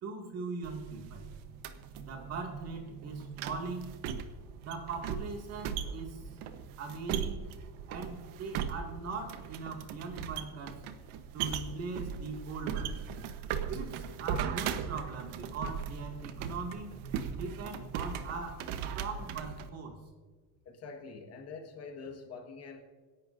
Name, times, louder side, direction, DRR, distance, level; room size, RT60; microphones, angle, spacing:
voice 1, 0.0-1.3 2.0-3.9 4.6-6.3 6.8-7.4 7.9-10.8 11.3-13.0 13.7-17.0 17.3-20.0, right 4 dB, 40° right, 2 dB, 2.3 m, -40 dB
sound 1, 0.6-19.7, right 8 dB, 85° right, 1.2 m, -39 dB
voice 2, 20.6-22.8, left 4 dB, 40° left, 3 dB, 1.7 m, -45 dB
26.0 x 11.5 x 2.7 m, 1.5 s
cardioid pair, 170°, 40 cm